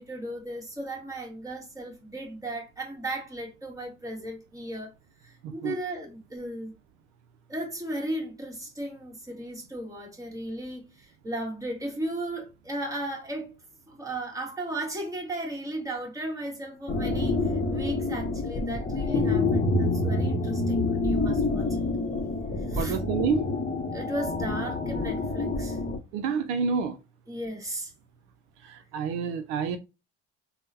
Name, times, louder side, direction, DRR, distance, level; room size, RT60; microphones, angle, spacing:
voice 1, 0.0-4.9 5.2-6.7 7.5-13.5 13.9-17.4 17.7-21.8 22.7-23.0 23.9-25.9 27.3-27.9, right 1 dB, 10° right, 1.5 m, -36 dB
voice 2, 5.4-5.8 21.2-21.3 22.8-23.5 26.1-27.0 28.6-29.8, right 6 dB, 75° right, 0.5 m, -28 dB
sound 1, 16.9-26.0, left 2 dB, 20° left, 0.9 m, -27 dB
3.5 x 2.2 x 2.6 m
hypercardioid pair, 70°, 32 cm